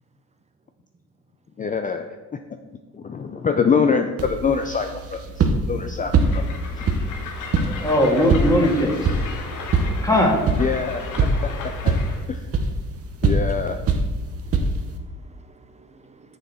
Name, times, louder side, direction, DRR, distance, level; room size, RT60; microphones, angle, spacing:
voice 1, 1.6-2.1 2.9-6.5 6.8-6.9 10.6-12.0 12.3-12.5 13.2-13.8, left 6 dB, 25° left, 0.4 m, -25 dB
sound 1, 4.2-15.0, right 3 dB, 50° right, 0.9 m, -24 dB
Train, 6.2-12.2, left 4 dB, 80° left, 1.2 m, -36 dB
voice 2, 7.6-9.2 9.8-10.4, equal, 10° left, 1.7 m, -20 dB
voice 3, 14.3-16.4, right 4 dB, 20° right, 0.6 m, -50 dB
6.8 x 6.5 x 4.2 m
cardioid pair, 90°, 30 cm